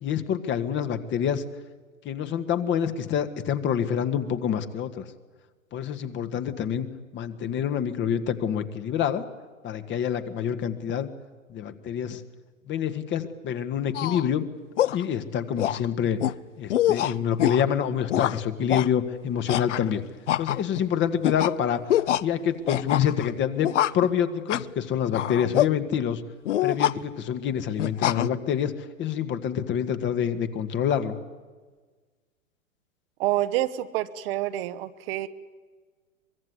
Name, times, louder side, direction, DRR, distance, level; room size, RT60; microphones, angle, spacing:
voice 1, 0.0-1.4 2.0-5.1 5.7-6.9 7.1-9.2 9.6-11.1 11.5-12.2 12.7-14.4 14.9-16.2 16.6-20.0 20.4-21.8 22.2-23.7 23.9-26.2 26.6-28.7 29.0-31.2, left 8 dB, 25° left, 10 dB, 1.8 m, -27 dB
sound 1, 13.9-14.3 14.8-15.0 15.6-15.9 16.2-16.3 16.7-17.6 18.1-18.4 18.7-18.9 19.5-19.9 20.3-20.8 21.2-21.5 21.9-22.2 22.7-23.3 23.6-24.1 24.5-24.7 25.1-25.7 26.5-26.9 27.8-28.3, left 12 dB, 60° left, 0.8 m, -25 dB
voice 2, 33.2-35.3, right 14 dB, 45° right, 10 dB, 1.4 m, -27 dB
23.5 x 22.5 x 9.8 m, 1.4 s
figure-of-eight pair, 105°, 41 cm